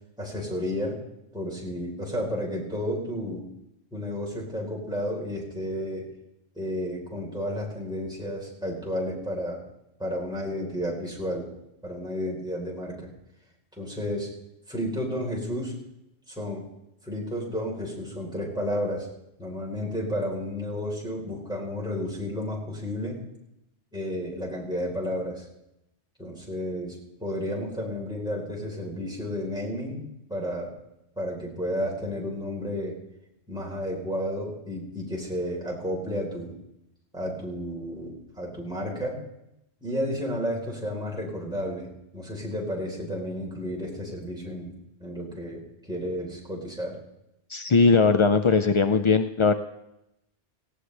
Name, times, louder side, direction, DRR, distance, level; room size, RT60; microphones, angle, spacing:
voice 1, 0.2-1.0 1.3-3.5 3.9-6.1 6.6-9.6 10.0-11.5 11.8-13.1 13.8-14.3 14.7-15.7 16.3-16.6 17.0-19.1 19.4-23.2 23.9-25.4 26.2-27.0 27.2-30.8 31.2-33.0 33.5-36.5 37.1-39.2 39.8-41.9 42.1-44.7 45.0-47.0, equal, 5° right, -3 dB, 3.9 m, -32 dB
voice 2, 47.5-49.5, left 4 dB, 55° left, 9 dB, 0.3 m, -20 dB
18.0 x 16.0 x 3.3 m, 0.85 s
omnidirectional pair, 1.2 m